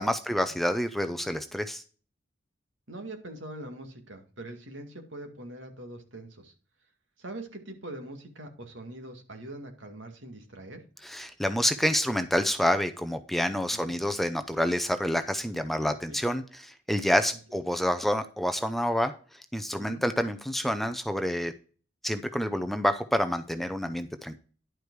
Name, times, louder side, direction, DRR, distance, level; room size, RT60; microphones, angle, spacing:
voice 1, 0.0-1.8 11.0-19.1 19.5-21.5 22.0-24.4, equal, ahead, 9 dB, 0.6 m, -28 dB
voice 2, 2.9-6.5 7.2-10.8 13.7-13.9 16.1-16.2 17.5-17.6 19.8-20.0, right 1 dB, 80° right, 5 dB, 2.1 m, -43 dB
11.0 x 5.0 x 4.7 m, 0.38 s
head